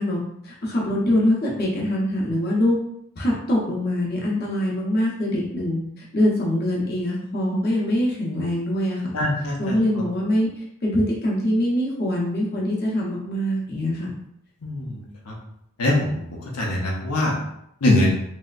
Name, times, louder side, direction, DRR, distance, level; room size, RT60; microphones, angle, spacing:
voice 1, 0.0-2.8 3.2-9.1 9.6-10.5 10.8-14.1, left 1 dB, 45° left, -4 dB, 0.7 m, -23 dB
voice 2, 9.1-9.6 14.6-15.0 15.8-16.2 16.6-17.3 17.8-18.1, left 1 dB, 90° left, -2 dB, 0.7 m, -21 dB
3.1 x 2.7 x 2.4 m, 0.75 s
head